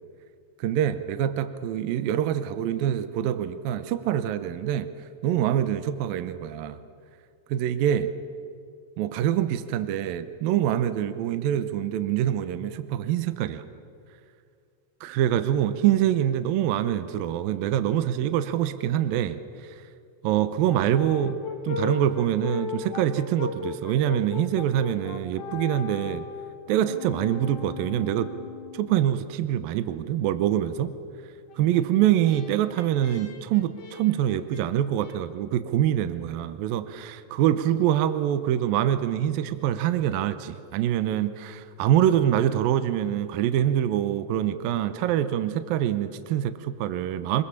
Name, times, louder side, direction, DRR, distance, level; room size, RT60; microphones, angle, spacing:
voice 1, 0.6-4.9 5.2-6.8 7.5-8.1 9.0-13.6 15.0-19.4 20.2-21.4 21.7-26.3 26.7-28.3 28.7-30.9 31.6-47.4, right 11 dB, 75° right, 11 dB, 2.2 m, -25 dB
Brass instrument, 20.7-29.0 31.5-35.2, left 6 dB, 55° left, 3.0 m, -37 dB
26.0 x 21.0 x 7.2 m, 2.4 s
omnidirectional pair, 5.0 m